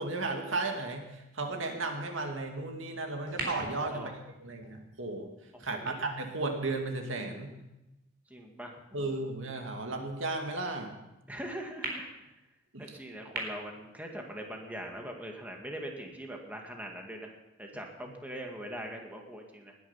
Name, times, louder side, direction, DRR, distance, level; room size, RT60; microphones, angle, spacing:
voice 1, 0.0-4.1 4.4-5.3 5.6-7.5 8.9-10.9 12.7-13.0 18.1-18.2, right 3 dB, 85° right, 3 dB, 2.2 m, -34 dB
sound 1, 3.3-7.7 8.4-8.5 11.8-11.9 13.3-13.4, right 3 dB, 60° right, 4.2 m, -42 dB
voice 2, 5.7-6.1 8.3-9.2 11.3-12.1 12.8-19.8, equal, 10° right, 1 dB, 2.0 m, -42 dB
20.0 x 10.5 x 5.7 m, 0.96 s
head